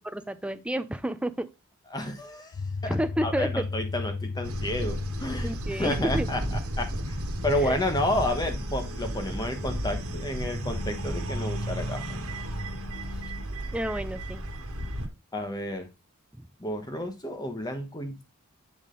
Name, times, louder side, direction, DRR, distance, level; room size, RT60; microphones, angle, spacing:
voice 1, 0.1-1.5 2.9-3.6 5.4-6.3 7.6-7.8 13.7-14.4, right 1 dB, 5° right, 0.4 m, -30 dB
voice 2, 1.9-2.5 2.8-3.0 3.2-5.5 5.8-6.4 6.8-7.2 7.4-12.0 15.3-15.9 16.6-18.2, left 1 dB, 20° left, 1.1 m, -30 dB
sound 1, 2.5-13.4, left 4 dB, 75° left, 0.4 m, -39 dB
sound 2, 4.4-15.1, right 1 dB, 75° right, 1.3 m, -33 dB
8.3 x 3.5 x 3.8 m
head